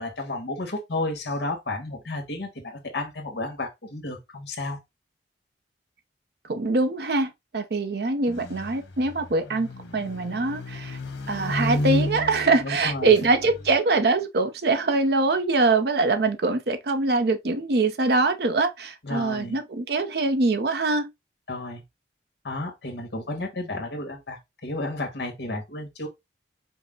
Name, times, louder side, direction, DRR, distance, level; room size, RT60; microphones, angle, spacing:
voice 1, 0.0-4.8 12.6-13.1 19.0-19.5 21.5-21.8 22.4-26.1, left 2 dB, 65° left, 1.5 m, -32 dB
voice 2, 6.4-11.0 11.3-21.1, right 3 dB, 60° right, 0.6 m, -23 dB
sound 1, 8.3-13.8, left 1 dB, 90° left, 1.0 m, -32 dB
5.4 x 2.1 x 3.7 m
head